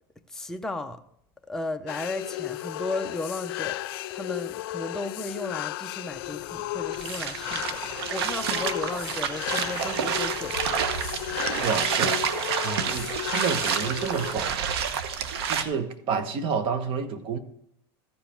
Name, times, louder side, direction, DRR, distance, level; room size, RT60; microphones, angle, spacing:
voice 1, 0.3-1.0 1.5-3.8 4.1-10.8, left 2 dB, 5° left, 0.6 m, -35 dB
sound 1, 1.9-14.3, left 15 dB, 65° left, 0.5 m, -34 dB
sound 2, 6.1-12.0, left 8 dB, 30° left, 1.2 m, -47 dB
sound 3, 6.9-15.6, right 7 dB, 80° right, 1.0 m, -29 dB
voice 2, 11.6-12.2 12.6-14.7 15.5-17.4, right 6 dB, 40° right, 1.2 m, -29 dB
14.0 x 5.2 x 4.4 m
supercardioid pair, 130°, 13 cm